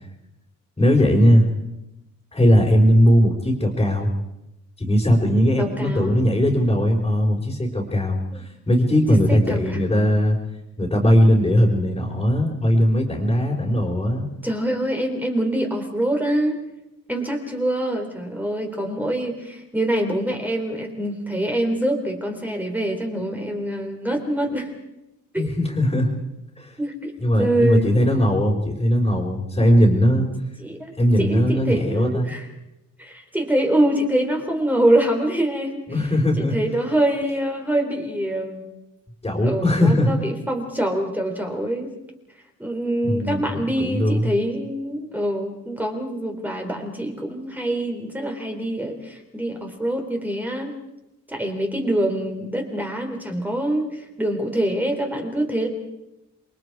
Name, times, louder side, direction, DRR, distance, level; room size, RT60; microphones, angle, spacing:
voice 1, 0.8-1.5 2.3-4.1 4.8-10.4 10.8-14.3 25.4-26.1 26.6-26.7 27.2-30.3 31.0-32.3 35.9-36.6 39.2-40.1 43.0-44.3, equal, 15° left, -4 dB, 4.3 m, -19 dB
voice 2, 5.6-6.2 8.3-8.4 9.3-9.8 14.4-16.6 17.1-24.8 25.3-25.5 26.8-27.1 27.4-27.9 30.6-30.9 31.2-32.5 33.0-35.8 36.4-38.6 39.4-41.9 42.6-50.7 51.3-55.7, right 1 dB, 5° right, 2 dB, 3.9 m, -25 dB
28.5 x 22.5 x 4.9 m, 0.91 s
cardioid pair, 120°, 31 cm